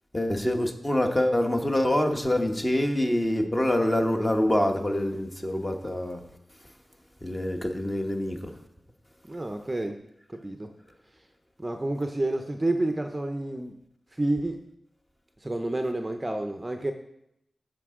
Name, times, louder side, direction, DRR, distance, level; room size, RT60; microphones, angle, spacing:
voice 1, 0.1-6.2 7.2-8.5, left 1 dB, 15° left, 4 dB, 1.1 m, -25 dB
voice 2, 9.3-10.0 10.3-10.7 11.6-13.7 14.1-14.6 15.4-16.9, right 1 dB, 20° right, 5 dB, 0.6 m, -29 dB
15.5 x 5.2 x 3.7 m, 0.79 s
wide cardioid pair, 100°, 0 cm